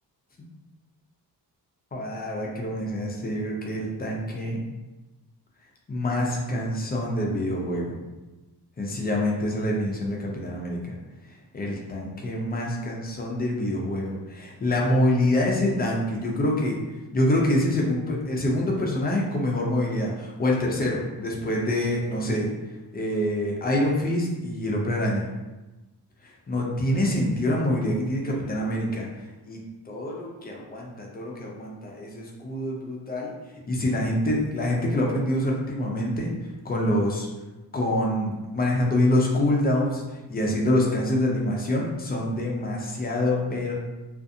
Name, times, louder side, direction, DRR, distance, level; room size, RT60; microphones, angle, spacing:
voice 1, 1.9-4.6 5.9-8.0 8.8-11.0 11.5-16.8 17.1-22.5 22.9-25.3 26.2-29.6 29.9-33.3 33.7-37.3 37.7-40.0 40.3-43.7, left 1 dB, 25° left, -2 dB, 0.3 m, -26 dB
2.5 x 2.4 x 2.6 m, 1.1 s
wide cardioid pair, 160°, 42 cm